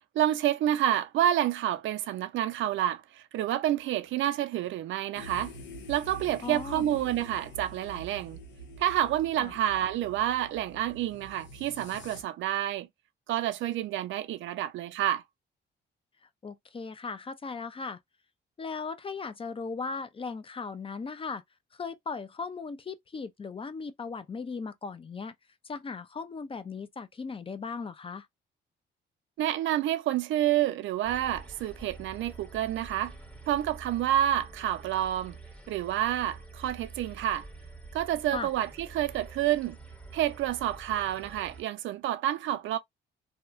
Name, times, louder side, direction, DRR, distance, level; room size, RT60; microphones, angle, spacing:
voice 1, 0.2-3.0 3.3-5.5 5.9-8.4 8.8-12.9 13.3-15.2 29.4-33.1 33.5-35.3 35.7-37.4 37.9-39.8 40.1-42.8, right 12 dB, 80° right, 0.5 m, -28 dB
sound 1, 5.1-12.2, right 1 dB, 75° left, 0.9 m, -46 dB
voice 2, 6.4-6.9 9.4-9.5 16.4-18.0 18.6-21.4 21.7-25.3 25.6-28.3 38.3-38.5, left 4 dB, 25° left, 0.5 m, -37 dB
sound 2, 31.0-41.6, right 3 dB, 5° left, 0.8 m, -47 dB
2.8 x 2.1 x 2.4 m
cardioid pair, 90°, 20 cm